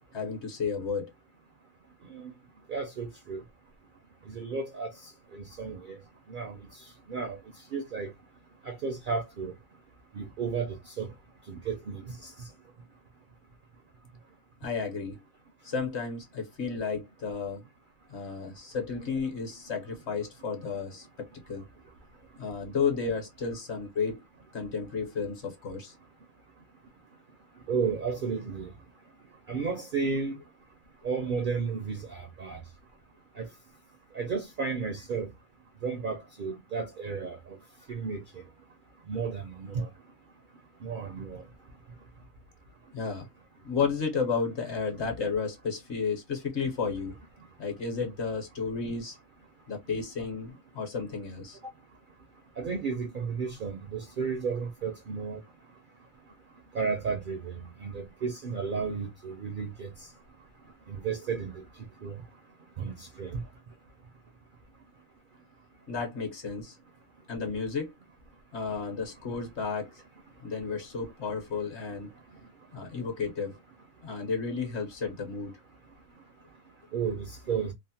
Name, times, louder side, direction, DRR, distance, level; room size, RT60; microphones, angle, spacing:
voice 1, 0.1-1.1 14.6-15.2 15.6-17.6 18.1-21.1 21.5-21.7 22.4-24.2 24.5-25.9 42.9-43.3 43.6-47.2 47.6-49.2 49.7-51.6 65.9-66.8 67.3-67.9 68.5-69.9 70.4-72.1 72.7-73.5 74.0-75.5, left 5 dB, 55° left, 1.1 m, -32 dB
voice 2, 2.7-3.4 4.3-4.9 5.3-6.0 6.3-6.6 7.1-7.4 7.7-8.1 8.6-9.5 10.1-11.1 11.5-12.3 27.7-28.7 29.5-30.4 31.0-32.6 33.4-33.5 34.1-35.3 35.8-37.6 37.9-38.4 39.1-39.9 40.8-41.4 52.6-55.4 56.7-59.9 60.9-61.6 62.0-62.2 62.8-63.4 76.9-77.7, right 5 dB, 65° right, 0.5 m, -33 dB
2.8 x 2.1 x 2.7 m
omnidirectional pair, 1.5 m